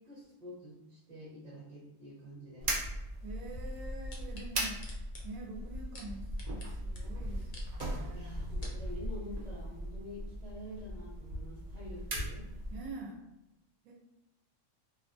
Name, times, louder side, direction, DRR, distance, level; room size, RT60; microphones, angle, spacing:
voice 1, 0.0-2.7 8.1-12.5, left 1 dB, 40° right, -8 dB, 0.7 m, -47 dB
sound 1, 2.6-12.9, right 1 dB, 65° right, 0.4 m, -39 dB
voice 2, 3.2-4.8 5.2-8.3 12.7-13.2 13.8-13.9, right 2 dB, 90° right, -1 dB, 1.0 m, -46 dB
sound 2, 4.1-6.7 7.0-7.1 7.4-7.9 8.3-8.8 9.4-9.5, left 2 dB, 55° left, 0.6 m, -50 dB
2.7 x 2.1 x 2.5 m, 0.93 s
omnidirectional pair, 1.3 m